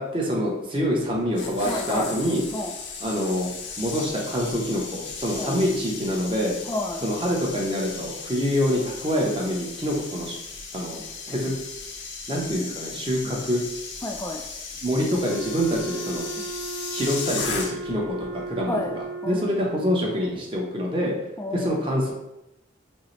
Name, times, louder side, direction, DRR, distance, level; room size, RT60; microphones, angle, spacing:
voice 1, 0.0-2.4 3.0-3.5 3.8-6.5 7.0-10.3 10.7-11.5 12.3-13.6 14.8-16.2 16.9-18.8 19.3-21.1 21.5-22.1, equal, 25° right, -2 dB, 0.7 m, -26 dB
sound 1, 1.1-18.0 18.3-18.6, left 5 dB, 65° left, 0.6 m, -36 dB
voice 2, 1.6-2.1 2.5-2.7 5.4-5.6 6.7-7.0 13.2-13.4 14.0-14.4 16.4-16.5 18.7-19.4 21.4-21.8, left 1 dB, 15° left, 2 dB, 0.3 m, -31 dB
Wind instrument woodwind instrument, 15.2-19.9, right 3 dB, 80° right, 1.1 m, -35 dB
5.3 x 2.0 x 3.1 m, 0.89 s
head